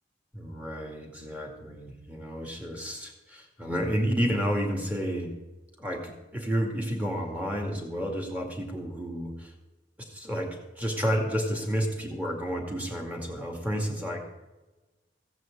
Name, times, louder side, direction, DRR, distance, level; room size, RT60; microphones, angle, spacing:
voice 1, 0.3-5.3 5.8-9.5 10.0-14.3, equal, 10° right, 1 dB, 2.2 m, -31 dB
16.0 x 6.3 x 8.0 m, 1.1 s
head